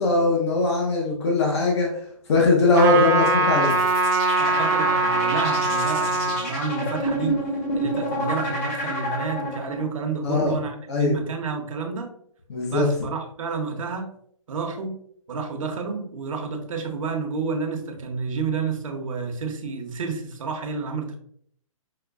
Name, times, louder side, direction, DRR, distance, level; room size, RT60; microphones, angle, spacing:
voice 1, 0.0-1.9 2.3-3.7 10.2-10.6 10.9-11.1 12.5-12.9, left 3 dB, 50° left, -1 dB, 0.9 m, -20 dB
Trumpet, 2.7-6.5, right 2 dB, 35° right, 0.7 m, -22 dB
sound 1, 3.6-9.8, equal, 25° left, 0.9 m, -29 dB
voice 2, 4.4-7.4 7.7-12.1 12.7-14.1 14.5-15.0 15.3-21.2, right 5 dB, 70° right, 3 dB, 0.9 m, -30 dB
5.6 x 2.2 x 2.3 m, 0.64 s
hypercardioid pair, 160°, 18 cm